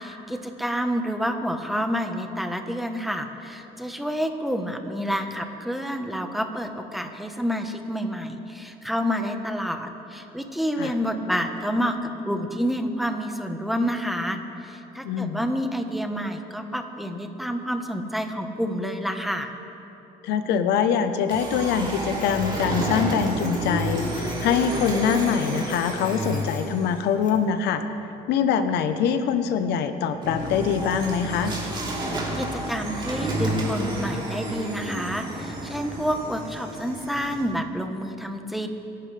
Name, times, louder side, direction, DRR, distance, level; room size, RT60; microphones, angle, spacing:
voice 1, 0.0-19.5 32.3-38.7, equal, ahead, 5 dB, 1.1 m, -28 dB
voice 2, 15.0-15.4 20.2-27.8 28.3-31.5, left 7 dB, 80° left, 9 dB, 0.9 m, -24 dB
sound 1, 21.3-27.1 30.2-37.4, right 1 dB, 30° right, 3.6 m, -30 dB
Printer, 22.1-27.5, left 5 dB, 50° left, 1.4 m, -47 dB
26.5 x 11.5 x 3.4 m, 3.0 s
cardioid pair, 110°, 17 cm